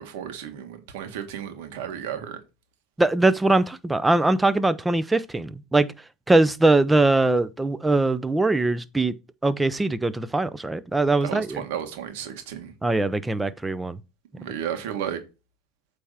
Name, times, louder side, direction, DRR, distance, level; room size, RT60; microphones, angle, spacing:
voice 1, 0.0-2.4 11.2-12.7 14.3-15.2, right 9 dB, 75° right, 1.7 m, -33 dB
voice 2, 3.0-5.9 6.3-9.1 9.4-11.6 12.8-14.0, right 2 dB, 10° right, 0.6 m, -21 dB
8.3 x 3.4 x 5.7 m
supercardioid pair, 105°, 0 cm